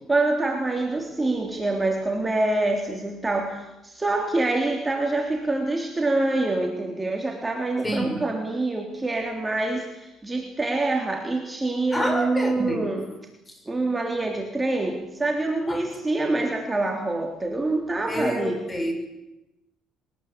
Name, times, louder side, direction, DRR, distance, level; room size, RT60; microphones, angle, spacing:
voice 1, 0.1-13.1 13.7-18.6, right 2 dB, 15° right, 2 dB, 3.4 m, -26 dB
voice 2, 7.8-8.2 11.9-12.9 15.7-15.8 18.1-18.9, equal, 15° left, 6 dB, 6.7 m, -28 dB
22.5 x 20.0 x 8.7 m, 0.93 s
cardioid pair, 95°, 0 cm